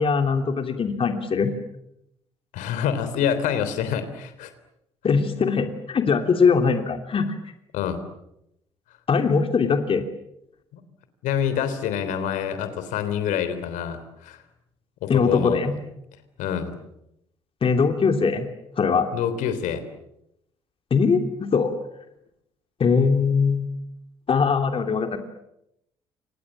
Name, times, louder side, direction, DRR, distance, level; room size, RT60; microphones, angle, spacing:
voice 1, 0.0-1.5 5.0-7.3 9.1-10.0 15.1-15.7 17.6-18.5 18.8-19.1 20.9-21.7 22.8-23.7 24.3-25.2, left 5 dB, 40° left, 6 dB, 2.9 m, -21 dB
voice 2, 2.5-4.5 7.7-8.0 10.7-10.8 11.2-14.4 15.0-15.6 16.4-16.7 19.1-19.8, left 8 dB, 65° left, 11 dB, 3.5 m, -26 dB
30.0 x 26.0 x 7.5 m, 0.83 s
hypercardioid pair, 50°, 14 cm